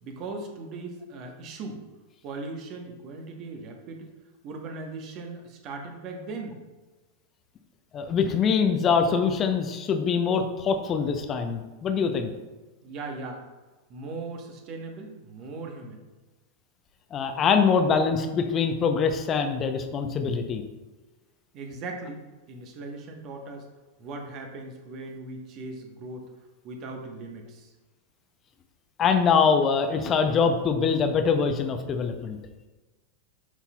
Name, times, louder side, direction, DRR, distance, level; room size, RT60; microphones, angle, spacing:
voice 1, 0.0-1.8 2.2-4.1 4.4-6.6 12.8-13.4 13.9-16.0 21.5-23.7 24.0-26.3 26.6-27.7, right 3 dB, 40° right, 3 dB, 1.2 m, -38 dB
voice 2, 7.9-12.3 17.1-20.6 29.0-32.4, left 6 dB, 30° left, 6 dB, 0.7 m, -24 dB
9.5 x 5.7 x 2.3 m, 1.2 s
figure-of-eight pair, 90°, 0 cm